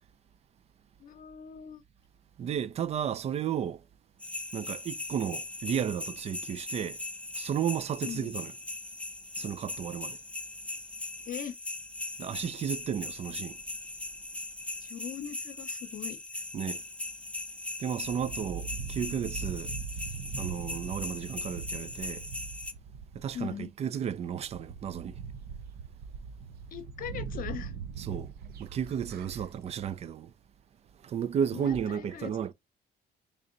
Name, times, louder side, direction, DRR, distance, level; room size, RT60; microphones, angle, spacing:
voice 1, 1.0-1.8 8.0-8.3 11.3-11.6 14.8-16.2 23.3-23.7 26.7-27.7 31.5-32.5, left 10 dB, 55° left, 0.8 m, -40 dB
voice 2, 2.4-3.8 4.5-7.0 7.4-8.5 9.4-10.2 12.2-13.6 16.5-16.8 17.8-19.7 20.4-22.2 23.1-25.2 28.0-28.3 28.6-30.3 31.0-32.5, right 8 dB, 40° right, 0.4 m, -33 dB
sound 1, 4.2-22.7, left 2 dB, 5° left, 0.5 m, -39 dB
sound 2, 18.0-23.5 24.1-24.2 24.4-29.9, right 6 dB, 70° right, 0.7 m, -41 dB
3.3 x 2.7 x 3.8 m
cardioid pair, 110°, 17 cm